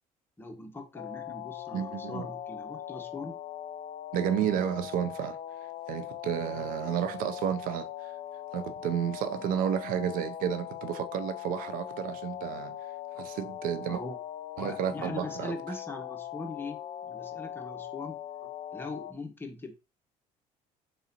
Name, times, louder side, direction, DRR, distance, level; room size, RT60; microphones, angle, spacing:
voice 1, 0.4-3.4 6.5-6.6 13.9-14.2 14.6-16.8 17.1-18.2 18.7-19.7, left 2 dB, 15° left, 1.1 m, -41 dB
sound 1, 0.9-19.1, left 11 dB, 55° left, 0.4 m, -40 dB
voice 2, 1.7-2.2 4.1-5.4 5.9-8.1 8.5-12.8 13.2-14.0 14.6-15.5, right 9 dB, 70° right, 0.5 m, -31 dB
3.9 x 3.8 x 2.8 m
cardioid pair, 100°, 15 cm